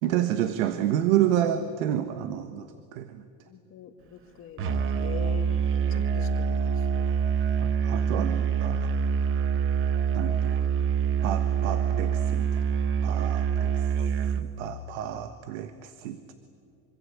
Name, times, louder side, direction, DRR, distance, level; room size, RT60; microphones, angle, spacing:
voice 1, 0.0-2.7 2.9-3.2 7.6-8.9 10.1-10.5 11.2-12.6 13.0-13.7 14.4-16.3, right 11 dB, 80° right, 10 dB, 1.6 m, -29 dB
voice 2, 3.5-7.0, left 8 dB, 35° left, 6 dB, 2.0 m, -44 dB
Musical instrument, 4.6-14.5, right 7 dB, 30° right, 1.1 m, -25 dB
26.0 x 24.5 x 8.6 m, 2.3 s
cardioid pair, 170°, 40 cm